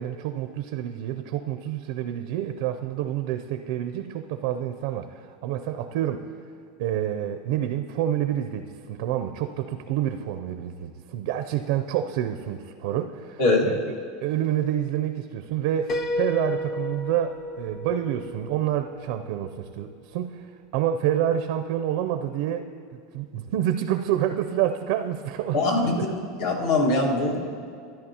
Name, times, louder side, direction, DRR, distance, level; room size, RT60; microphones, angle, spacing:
voice 1, 0.0-6.3 6.8-13.8 14.2-26.1, right 11 dB, 65° right, 8 dB, 0.4 m, -28 dB
Piano, 15.9-19.6, left 1 dB, 35° left, 0.6 m, -32 dB
voice 2, 25.5-27.4, left 2 dB, 70° left, -1 dB, 1.6 m, -22 dB
13.5 x 10.5 x 2.9 m, 2.3 s
supercardioid pair, 140°, 0 cm